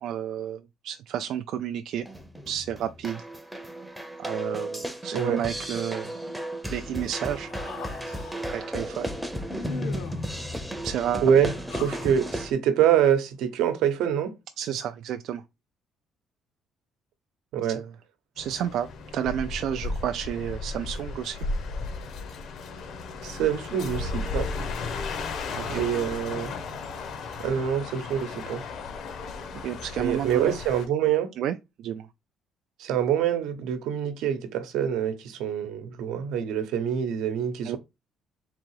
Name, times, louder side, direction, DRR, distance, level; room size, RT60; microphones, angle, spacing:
voice 1, 0.0-2.1 2.5-3.3 4.2-6.2 6.7-7.5 8.5-9.1 10.8-11.3 14.6-15.4 17.7-17.9 18.4-21.5 25.5-25.8 29.5-30.6 31.4-32.1 37.6-37.8, right 10 dB, 65° right, 0.3 m, -31 dB
sound 1, 2.0-12.5, equal, 5° right, 0.6 m, -34 dB
voice 2, 5.1-5.4 11.2-11.5 11.8-14.3 17.5-17.8 23.2-24.5 25.7-26.5 27.4-28.6 30.0-31.3 32.8-37.8, right 9 dB, 80° right, 0.9 m, -25 dB
Human voice, 7.0-8.5 9.5-10.3 11.3-12.4, left 5 dB, 90° left, 1.2 m, -41 dB
sound 2, 18.4-30.9, left 4 dB, 55° left, 0.8 m, -35 dB
3.7 x 2.8 x 4.6 m
cardioid pair, 150°, 0 cm